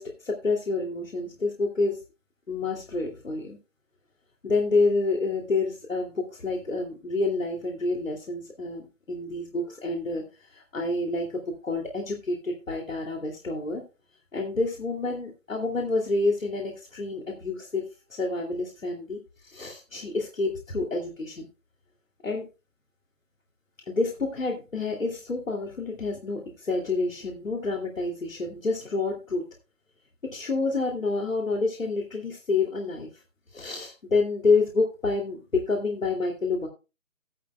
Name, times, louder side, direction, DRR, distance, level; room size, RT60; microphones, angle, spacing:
voice 1, 0.0-2.0 2.5-3.6 4.4-13.8 14.3-17.8 18.1-21.5 22.2-22.5 23.9-29.4 30.2-33.2 33.5-36.7, left 3 dB, 70° left, 1 dB, 2.6 m, -28 dB
14.5 x 11.0 x 2.2 m, 0.29 s
figure-of-eight pair, 170°, 41 cm